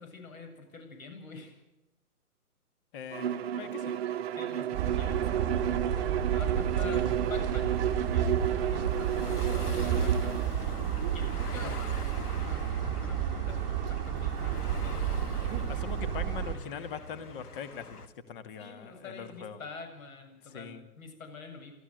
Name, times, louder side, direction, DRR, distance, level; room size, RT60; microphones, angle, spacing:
voice 1, 0.0-1.6 4.4-5.9 6.3-7.0 7.3-7.8 8.1-10.4 11.1-11.9 12.2-13.6 13.9-15.0 18.6-21.7, left 4 dB, 60° left, 6 dB, 7.8 m, -46 dB
voice 2, 2.9-4.0 6.8-7.1 11.6-11.7 15.7-18.0 18.3-19.6 20.5-20.8, left 7 dB, 35° left, 11 dB, 2.2 m, -42 dB
Bowed string instrument, 3.1-10.5, right 9 dB, 45° right, 1.2 m, -32 dB
sound 1, 4.7-16.6, right 9 dB, 20° right, 1.4 m, -31 dB
sound 2, 4.9-18.1, left 3 dB, 80° left, 2.2 m, -44 dB
29.0 x 14.0 x 8.1 m, 0.94 s
hypercardioid pair, 145°, 45 cm